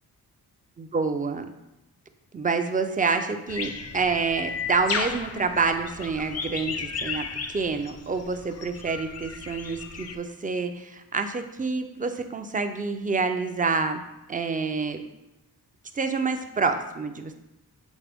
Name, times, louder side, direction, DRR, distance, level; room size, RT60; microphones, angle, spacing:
voice 1, 0.8-1.5 2.3-14.0 14.3-15.0 15.9-17.3, right 4 dB, 20° right, 7 dB, 0.4 m, -27 dB
sound 1, 3.5-10.2, left 5 dB, 40° left, 0.4 m, -34 dB
7.2 x 4.3 x 3.4 m, 0.93 s
wide cardioid pair, 155°, 39 cm